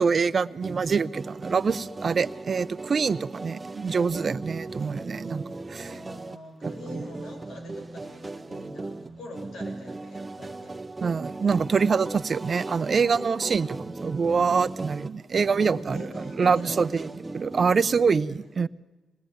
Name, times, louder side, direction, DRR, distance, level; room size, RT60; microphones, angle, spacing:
voice 1, 0.0-6.0 6.6-6.7 11.0-16.1 16.4-18.7, right 5 dB, 50° right, 0.8 m, -25 dB
sound 1, 0.6-18.1, right 2 dB, 25° right, 1.0 m, -37 dB
voice 2, 5.8-10.8 15.7-17.2 18.0-18.5, left 1 dB, 80° left, 6.7 m, -45 dB
26.0 x 19.5 x 9.4 m
supercardioid pair, 55°, 0 cm